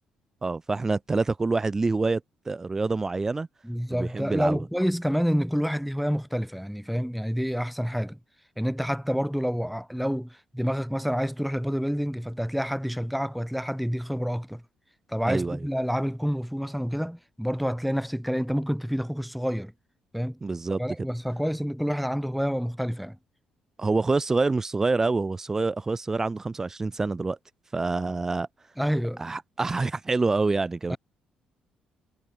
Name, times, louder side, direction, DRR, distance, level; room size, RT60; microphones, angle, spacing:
voice 1, 0.4-2.2 2.5-3.5 3.9-4.6 15.2-15.6 20.4-20.8 23.8-27.4 27.7-28.5 29.2-31.0, right 3 dB, 20° right, 7.2 m, -26 dB
voice 2, 3.6-8.2 8.6-14.6 15.1-19.7 20.1-20.4 20.8-23.2 28.8-29.2 30.9-31.0, equal, ahead, 7.7 m, -28 dB
cardioid pair, 135°, 3 cm